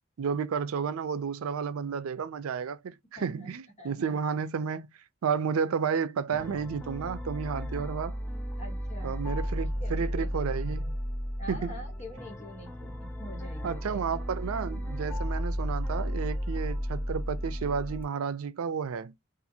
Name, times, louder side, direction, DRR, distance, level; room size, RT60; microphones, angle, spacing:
voice 1, 0.2-4.9 5.2-8.1 9.0-10.9 11.5-11.8 13.6-19.1, right 6 dB, 90° right, 0.4 m, -32 dB
voice 2, 3.2-3.5 3.8-3.9 8.6-9.1 9.8-10.3 11.4-14.0, equal, 30° left, 1.3 m, -45 dB
sound 1, 6.3-18.0, equal, 10° left, 0.4 m, -34 dB
2.6 x 2.4 x 2.7 m
head